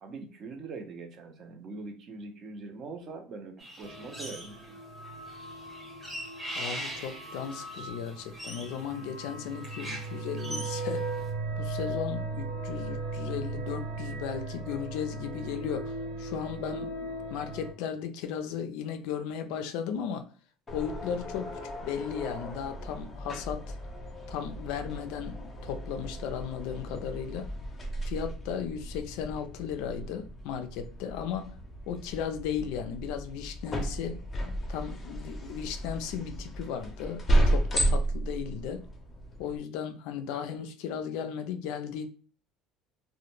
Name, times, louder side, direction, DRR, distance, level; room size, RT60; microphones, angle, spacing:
voice 1, 0.0-4.8, right 3 dB, 45° right, 0.5 m, -42 dB
sound 1, 3.6-4.7 5.0-11.2, right 1 dB, 10° right, 0.7 m, -42 dB
sound 2, 3.8-17.7, right 2 dB, 85° right, 0.8 m, -38 dB
voice 2, 6.5-11.1 11.6-20.3 20.7-23.8 24.3-27.5 28.0-31.6 31.9-34.2 34.7-38.9 39.4-42.1, left 8 dB, 75° left, 0.3 m, -36 dB
sound 3, 20.7-39.6, right 1 dB, 25° left, 0.5 m, -33 dB
2.1 x 2.0 x 3.0 m
cardioid pair, 130°, 0 cm